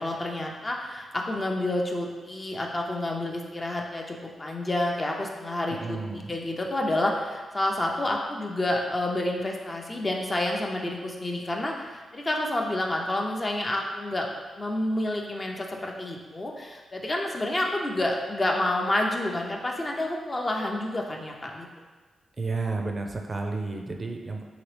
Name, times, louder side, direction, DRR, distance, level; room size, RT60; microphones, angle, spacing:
voice 1, 0.0-14.3 14.6-21.7, left 1 dB, 30° left, 0 dB, 0.5 m, -29 dB
voice 2, 5.8-6.3 22.4-24.4, right 3 dB, 40° right, 3 dB, 0.4 m, -31 dB
2.9 x 2.9 x 3.2 m, 1.3 s
supercardioid pair, 55°, 0 cm